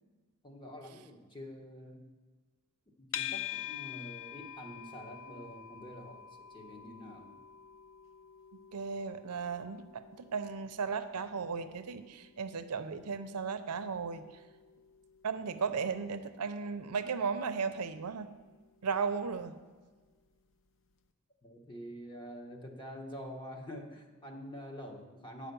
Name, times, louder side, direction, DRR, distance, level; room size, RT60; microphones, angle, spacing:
voice 1, 0.4-2.1 3.0-7.4 21.4-25.5, equal, 20° left, 2 dB, 1.1 m, -46 dB
sound 1, 3.1-20.3, left 10 dB, 60° left, 0.5 m, -48 dB
voice 2, 8.7-14.3 15.2-18.3 18.8-19.5, right 5 dB, 90° right, 10 dB, 0.6 m, -35 dB
8.8 x 5.1 x 6.8 m, 1.3 s
head